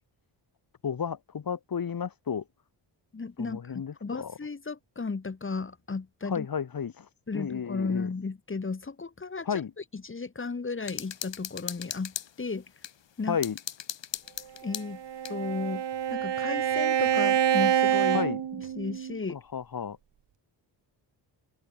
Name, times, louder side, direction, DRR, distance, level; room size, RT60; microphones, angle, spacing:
voice 1, 0.8-2.4 3.4-4.3 6.3-7.1 7.3-8.1 9.5-9.7 13.3-13.6 18.1-18.4 19.3-20.0, left 7 dB, 45° left, 3.8 m, -32 dB
voice 2, 3.1-6.5 7.3-12.7 13.2-13.4 14.6-15.0 15.3-15.8 16.1-18.3 18.5-19.4, left 4 dB, 25° left, 3.9 m, -34 dB
sound 1, 10.8-12.9 13.4-15.4, left 9 dB, 65° left, 3.3 m, -38 dB
Bowed string instrument, 14.7-19.2, right 9 dB, 60° right, 2.2 m, -27 dB
open air
wide cardioid pair, 155°, 48 cm